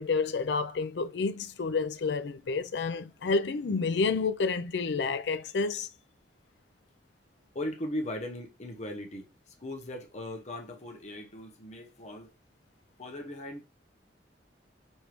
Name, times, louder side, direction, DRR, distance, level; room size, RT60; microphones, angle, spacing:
voice 1, 0.0-5.9, left 4 dB, 70° left, 0.5 m, -29 dB
voice 2, 7.5-12.3 13.0-13.6, left 1 dB, 40° left, 0.9 m, -38 dB
5.3 x 3.3 x 3.0 m
head